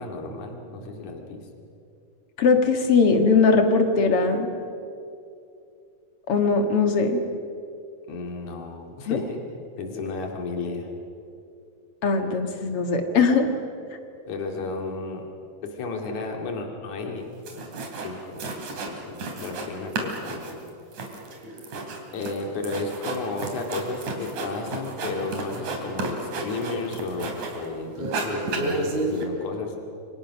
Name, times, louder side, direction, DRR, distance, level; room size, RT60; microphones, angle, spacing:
voice 1, 0.0-1.4 8.1-9.4 9.8-10.9 14.3-15.2 15.7-17.3 18.0-20.6 22.1-29.8, left 3 dB, 75° left, 2 dB, 3.8 m, -33 dB
voice 2, 2.4-4.5 6.3-7.2 9.1-9.2 12.0-13.5, left 4 dB, 55° left, 5 dB, 2.5 m, -20 dB
sound 1, 17.2-17.3 17.5-18.1 18.4-19.7 19.9-27.7 28.0-29.2, right 2 dB, 75° right, 4.2 m, -32 dB
28.5 x 24.5 x 6.1 m, 2.5 s
omnidirectional pair, 3.4 m